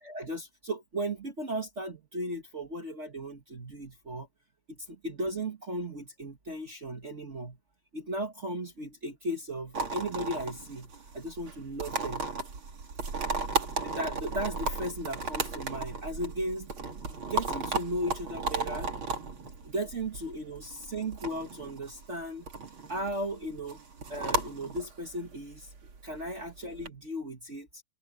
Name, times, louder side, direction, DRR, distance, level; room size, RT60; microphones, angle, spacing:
voice 1, 0.0-4.3 4.7-7.6 7.9-12.3 13.8-16.7 17.1-18.9 19.6-22.5 22.9-23.8 24.1-25.7 26.0-27.8, right 1 dB, 85° right, 0.6 m, -36 dB
sound 1, 9.7-26.9, right 3 dB, 35° right, 2.9 m, -35 dB
omnidirectional pair, 4.3 m